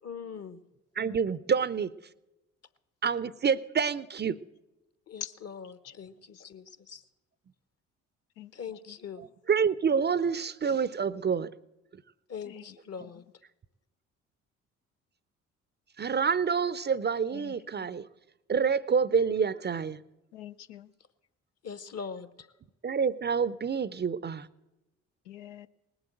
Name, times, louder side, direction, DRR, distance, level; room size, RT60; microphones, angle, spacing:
voice 1, 0.0-0.6 5.1-7.0 8.5-9.3 12.3-13.2 21.6-22.5, left 6 dB, 45° left, 14 dB, 1.1 m, -42 dB
voice 2, 1.0-1.9 3.0-4.4 9.5-11.5 16.0-18.1 18.5-20.0 22.8-24.5, right 6 dB, 30° right, 18 dB, 0.5 m, -27 dB
voice 3, 17.3-17.9 20.3-20.9 25.3-25.7, left 11 dB, 80° left, 10 dB, 0.6 m, -43 dB
19.0 x 7.9 x 7.6 m, 0.98 s
hypercardioid pair, 50°, 35 cm